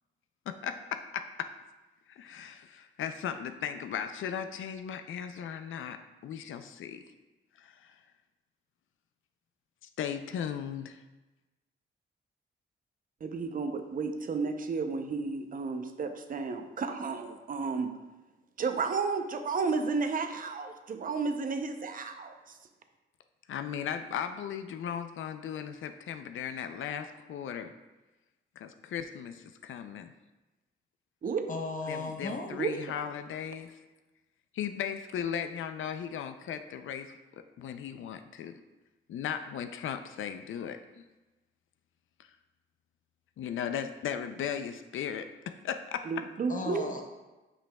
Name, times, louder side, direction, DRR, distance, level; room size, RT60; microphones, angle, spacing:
voice 1, 0.5-1.5 2.1-7.0 7.6-7.9 10.0-11.0 23.5-27.7 28.6-30.1 31.9-33.8 34.5-38.5 39.1-41.0 43.4-46.0, left 8 dB, 80° left, 8 dB, 0.5 m, -37 dB
voice 2, 13.2-17.9 18.6-22.3 31.2-31.4 32.6-32.7 46.1-46.8, right 4 dB, 45° right, 6 dB, 0.6 m, -32 dB
voice 3, 31.5-32.5 46.5-47.0, left 3 dB, 40° left, 3 dB, 0.9 m, -35 dB
8.6 x 5.3 x 2.3 m, 1.1 s
cardioid pair, 110°, 20 cm